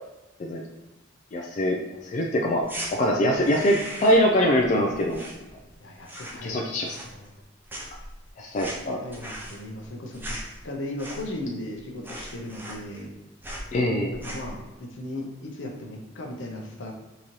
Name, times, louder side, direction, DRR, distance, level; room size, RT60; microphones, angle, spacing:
voice 1, 1.3-1.8 2.0-2.7 2.9-5.2 6.4-7.0 8.4-9.0 13.7-14.2, equal, 40° left, 0 dB, 0.3 m, -23 dB
sound 1, 2.6-2.9 3.3-4.3 4.6-5.7 6.0-6.5 6.8-7.4 7.7-11.5 11.7-11.8 12.0-13.1 13.4-13.7 14.1-14.6, right 1 dB, 10° right, 0.5 m, -38 dB
voice 2, 5.8-6.6 7.0-7.3 9.0-10.4 10.6-13.1 14.1-16.9, left 1 dB, 75° left, 1 dB, 0.6 m, -36 dB
3.8 x 2.8 x 3.0 m, 0.99 s
head